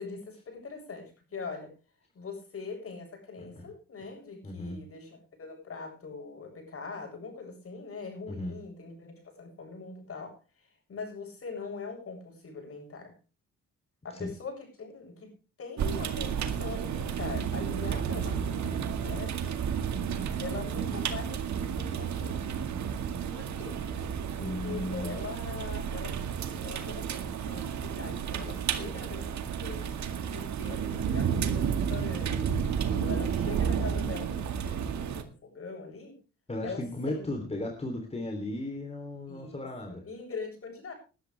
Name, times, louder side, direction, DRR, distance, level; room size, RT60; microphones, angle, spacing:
voice 1, 0.0-1.7 2.1-13.1 14.0-15.3 15.6-19.6 20.4-22.5 23.3-23.8 24.4-26.2 26.6-32.4 32.8-36.2 36.6-37.2 39.3-40.9, left 4 dB, 50° left, 3 dB, 7.5 m, -42 dB
voice 2, 4.4-4.8 8.3-8.5 14.2-14.3 24.4-25.2 36.5-40.0, left 1 dB, 20° left, 3 dB, 3.3 m, -35 dB
sound 1, 15.8-35.2, right 7 dB, 65° right, 2.0 m, -32 dB
20.5 x 11.5 x 3.4 m, 0.32 s
cardioid pair, 90°, 30 cm